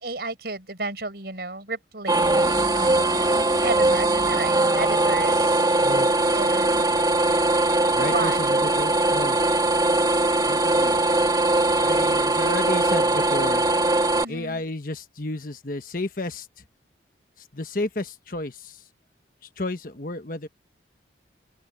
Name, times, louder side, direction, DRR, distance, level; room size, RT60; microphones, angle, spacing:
voice 1, 0.0-5.5 6.3-6.9 8.0-8.7 14.2-14.6, right 3 dB, 60° right, 5.4 m, -32 dB
sound 1, 2.1-14.2, right 2 dB, 20° right, 2.1 m, -21 dB
voice 2, 7.9-9.4 10.4-11.0 11.8-13.6 14.3-16.5 17.5-18.8 19.6-20.5, left 2 dB, 50° left, 1.3 m, -32 dB
open air
head